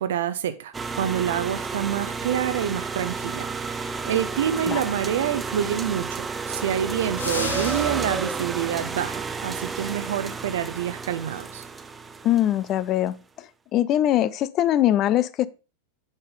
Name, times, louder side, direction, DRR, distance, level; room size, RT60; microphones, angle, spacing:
voice 1, 0.0-11.6, right 10 dB, 60° right, 0.7 m, -27 dB
sound 1, 0.7-12.8, right 4 dB, 15° right, 0.6 m, -31 dB
sound 2, 7.2-8.2, left 3 dB, 75° left, 0.9 m, -31 dB
voice 2, 12.2-13.1 13.7-15.5, left 12 dB, 35° left, 0.5 m, -21 dB
9.0 x 5.5 x 3.8 m
figure-of-eight pair, 90°, 0 cm